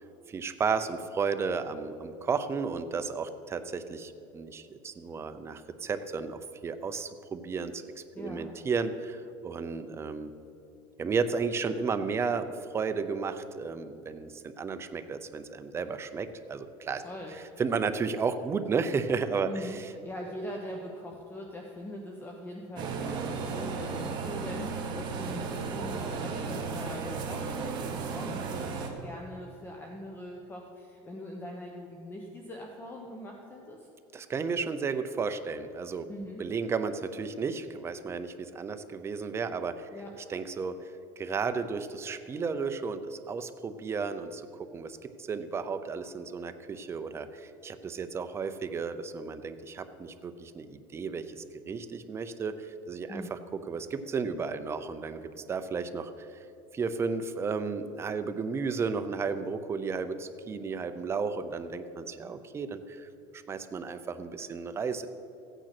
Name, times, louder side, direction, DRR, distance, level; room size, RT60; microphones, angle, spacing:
voice 1, 0.3-10.3 11.0-17.0 17.6-19.9 34.1-36.1 36.4-39.9 40.3-40.8 41.2-45.0 45.3-53.4 53.7-55.2 55.5-56.4 56.7-63.1 63.3-65.1, right 5 dB, 20° right, 9 dB, 0.7 m, -33 dB
voice 2, 8.1-8.5 16.9-17.3 19.4-19.8 20.0-33.9 36.1-36.4 39.9-40.1 53.1-53.3, left 1 dB, 15° left, 1 dB, 1.1 m, -42 dB
sound 1, 22.8-28.9, right 5 dB, 40° right, 1.9 m, -34 dB
14.5 x 9.1 x 6.0 m, 2.8 s
cardioid pair, 150°, 12 cm